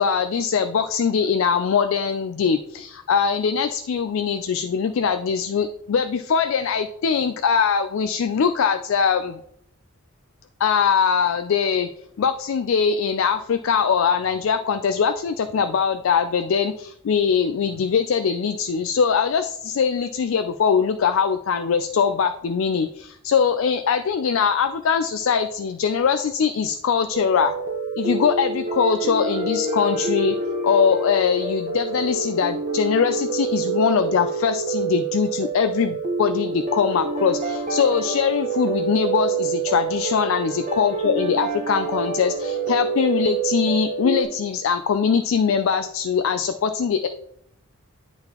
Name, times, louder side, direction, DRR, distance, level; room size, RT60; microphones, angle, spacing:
voice 1, 0.0-9.4 10.6-11.9 12.2-27.5 28.0-30.4 30.6-47.1, left 6 dB, 65° left, 10 dB, 0.4 m, -22 dB
sound 1, 27.1-44.2, right 4 dB, 35° right, 0.9 m, -27 dB
10.5 x 3.9 x 2.9 m, 0.71 s
head